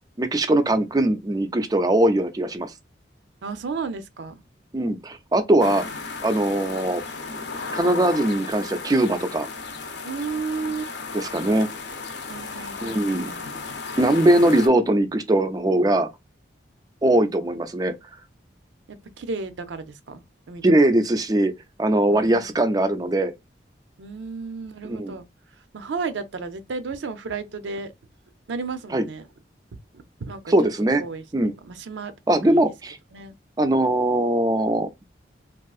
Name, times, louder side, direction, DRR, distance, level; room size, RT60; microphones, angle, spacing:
voice 1, 0.2-2.7 4.7-5.8 6.2-7.0 7.7-9.5 11.1-11.7 12.8-13.3 14.0-16.1 17.0-17.9 20.6-21.5 21.8-23.3 24.8-25.1 28.9-29.1 30.5-31.0 31.3-31.5 32.3-33.0 33.6-34.9, right 1 dB, 20° right, 0.3 m, -21 dB
voice 2, 3.4-4.4 10.0-10.9 12.3-13.5 18.9-20.6 22.1-22.5 24.0-25.3 25.7-27.9 28.5-29.3 30.2-30.5 31.0-31.2 31.6-32.1 32.4-32.6 33.1-33.3, right 4 dB, 85° right, 0.5 m, -33 dB
sound 1, 5.6-14.7, left 4 dB, 70° left, 0.7 m, -34 dB
3.5 x 2.4 x 2.3 m
head